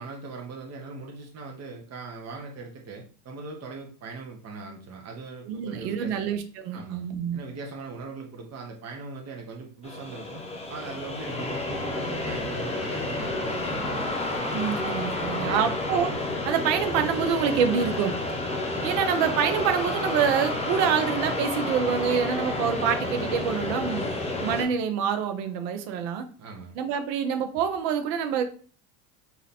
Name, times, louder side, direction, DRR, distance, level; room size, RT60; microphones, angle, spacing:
voice 1, 0.0-6.2 6.7-10.4 10.7-14.0 15.4-15.7 26.4-26.8, right 3 dB, 35° right, 1 dB, 1.0 m, -40 dB
voice 2, 5.5-7.4 14.5-16.1 16.4-18.2 18.8-24.1 24.4-26.3 26.8-28.4, right 7 dB, 80° right, 8 dB, 0.9 m, -26 dB
sound 1, 9.8-24.7, left 2 dB, 15° left, 1.1 m, -30 dB
3.2 x 2.9 x 4.2 m, 0.40 s
supercardioid pair, 105°, 48 cm